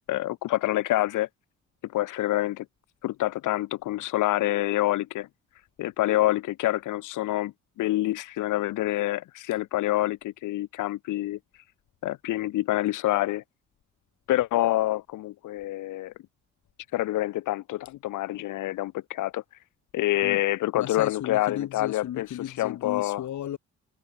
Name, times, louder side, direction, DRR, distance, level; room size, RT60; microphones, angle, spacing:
voice 1, 0.1-1.3 1.8-2.7 3.0-5.3 5.8-11.4 12.0-13.4 14.3-16.1 16.9-19.4 19.9-22.3 22.6-23.2, left 15 dB, 85° left, 1.8 m, -27 dB
voice 2, 20.7-23.6, left 11 dB, 70° left, 4.4 m, -35 dB
cardioid pair, 90°, 30 cm